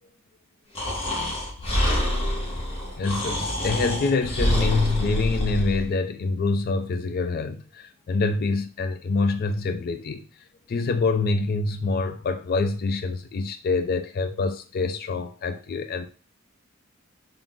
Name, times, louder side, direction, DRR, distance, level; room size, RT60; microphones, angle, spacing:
Breathing, 0.7-5.9, left 1 dB, 30° left, 1.1 m, -26 dB
voice 1, 3.0-10.2 10.7-16.1, left 3 dB, 45° left, 0.4 m, -26 dB
3.8 x 2.4 x 3.5 m
head